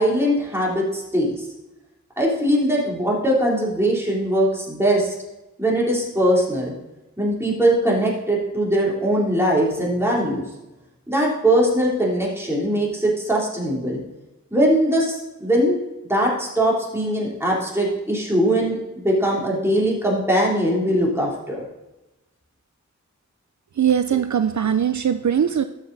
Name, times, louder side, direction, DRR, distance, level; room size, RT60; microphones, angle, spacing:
voice 1, 0.0-1.3 2.2-5.1 5.6-6.7 7.2-10.4 11.1-14.0 14.5-15.8 16.1-21.6, right 1 dB, 10° right, -4 dB, 3.3 m, -21 dB
voice 2, 23.8-25.6, right 8 dB, 70° right, 9 dB, 0.5 m, -20 dB
12.5 x 8.0 x 4.0 m, 0.98 s
wide cardioid pair, 65°, 30 cm